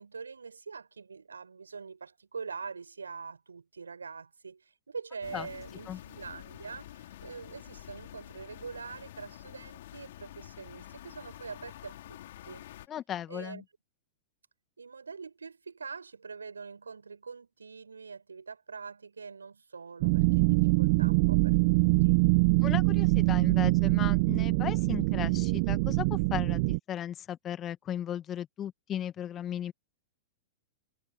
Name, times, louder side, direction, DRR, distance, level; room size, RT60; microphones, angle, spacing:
voice 1, 0.0-12.2 12.4-12.6 13.3-13.6 14.8-22.2, right 5 dB, 80° right, 7.8 m, -44 dB
sound 1, 5.2-12.9, left 13 dB, 60° left, 5.3 m, -48 dB
voice 2, 12.9-13.6 22.6-29.7, left 10 dB, 30° left, 2.1 m, -36 dB
sound 2, 20.0-26.8, right 27 dB, 50° right, 1.6 m, -24 dB
figure-of-eight pair, 100°, 0 cm